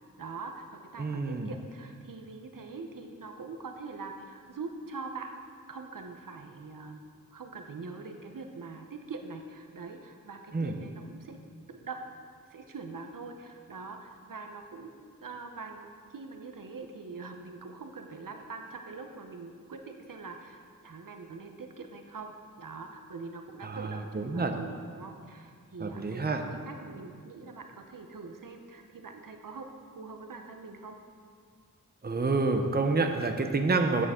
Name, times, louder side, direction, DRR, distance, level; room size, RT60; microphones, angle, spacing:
voice 1, 0.2-5.4 5.7-7.0 7.3-11.4 11.7-12.0 12.5-14.9 15.2-15.9 16.1-29.7 29.9-31.0, right 4 dB, 75° right, 5 dB, 0.8 m, -43 dB
voice 2, 1.0-1.5 10.5-10.7 23.6-24.5 25.8-26.4 32.0-34.1, right 3 dB, 30° right, 5 dB, 0.7 m, -28 dB
9.1 x 8.6 x 3.6 m, 2.1 s
wide cardioid pair, 50°, 33 cm